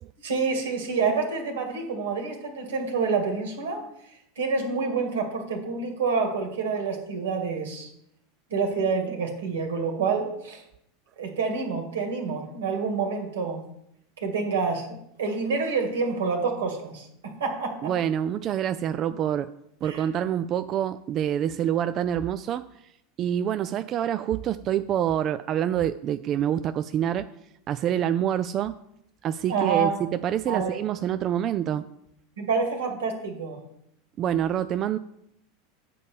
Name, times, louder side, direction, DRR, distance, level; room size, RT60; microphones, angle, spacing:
voice 1, 0.2-7.9 8.5-10.6 11.2-13.6 14.2-17.9 19.8-20.1 29.5-30.0 30.5-30.8 32.4-33.6, right 5 dB, 90° right, 3 dB, 2.0 m, -28 dB
voice 2, 17.8-19.5 19.8-22.6 23.2-27.3 27.7-28.7 29.2-31.8 34.2-35.0, right 10 dB, 40° right, 11 dB, 0.3 m, -26 dB
8.3 x 4.1 x 7.1 m, 0.76 s
hypercardioid pair, 110°, 0 cm